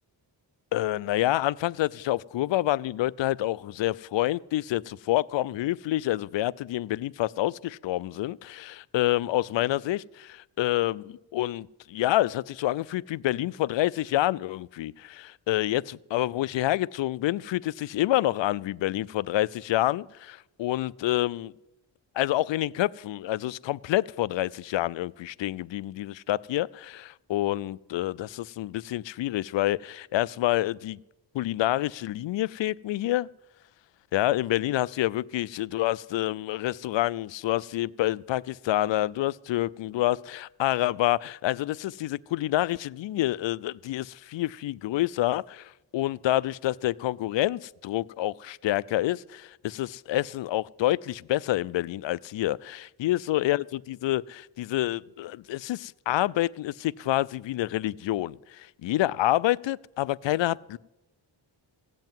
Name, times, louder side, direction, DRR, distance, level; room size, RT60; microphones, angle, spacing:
voice 1, 0.7-21.5 22.2-31.0 31.3-33.3 34.1-60.8, left 15 dB, 75° left, 0.5 m, -28 dB
16.5 x 7.7 x 9.1 m
cardioid pair, 95°, 45 cm